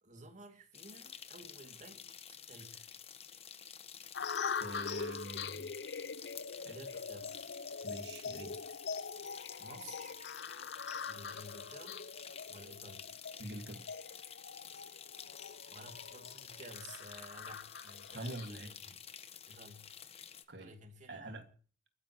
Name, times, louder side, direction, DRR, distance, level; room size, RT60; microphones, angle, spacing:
voice 1, 0.0-2.9 6.6-7.4 9.6-10.2 11.1-12.0 12.5-13.1 15.7-18.9 19.5-19.9 20.6-21.5, right 2 dB, 45° right, 2.5 m, -54 dB
sound 1, 0.7-20.4, left 8 dB, 35° left, 1.2 m, -51 dB
sound 2, 4.1-18.5, left 5 dB, 75° left, 0.6 m, -43 dB
voice 2, 4.6-5.7 6.6-6.8 7.8-8.6 13.4-13.9 18.1-18.7 20.5-20.7 21.1-21.4, right 2 dB, 70° right, 2.0 m, -45 dB
30.0 x 10.5 x 3.1 m
head